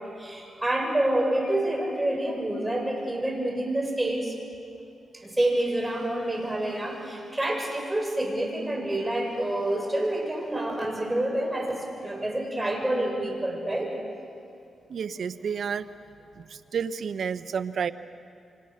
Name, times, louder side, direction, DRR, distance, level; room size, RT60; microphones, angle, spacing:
voice 1, 0.0-4.3 5.1-13.9, right 1 dB, 15° right, 1 dB, 6.7 m, -28 dB
voice 2, 14.9-15.9 16.3-17.9, right 7 dB, 70° right, 12 dB, 0.9 m, -30 dB
29.0 x 25.0 x 6.6 m, 2.4 s
cardioid pair, 70°, 0 cm